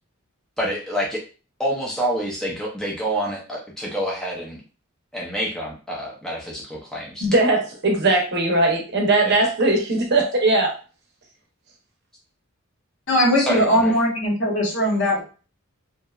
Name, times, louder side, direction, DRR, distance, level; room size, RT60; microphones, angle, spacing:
voice 1, 0.6-1.2 1.6-4.6 5.1-7.4 9.3-9.4 13.4-13.9, equal, 5° left, 0.4 m, -27 dB
voice 2, 7.2-10.7, right 2 dB, 50° right, 0.7 m, -19 dB
voice 3, 13.1-15.2, equal, 55° left, 0.8 m, -20 dB
2.7 x 2.1 x 2.3 m
head